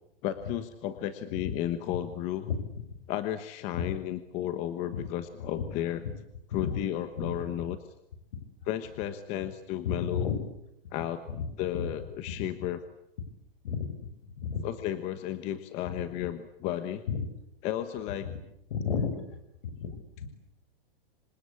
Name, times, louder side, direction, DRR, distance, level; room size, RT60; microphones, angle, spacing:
voice 1, 0.2-2.5 3.1-6.0 6.5-7.8 8.7-10.3 10.9-11.2 11.6-12.8 14.6-17.0 17.6-18.3, left 12 dB, 20° left, 10 dB, 1.2 m, -33 dB
voice 2, 9.8-10.4 11.3-11.5 11.7-11.9 12.4-12.7 13.6-13.9 14.4-14.7 15.9-16.0 17.1-17.2 18.2-18.4 18.7-19.4 19.6-20.3, left 6 dB, 65° left, 10 dB, 6.2 m, -33 dB
27.0 x 25.5 x 8.5 m, 0.81 s
supercardioid pair, 170°, 30 cm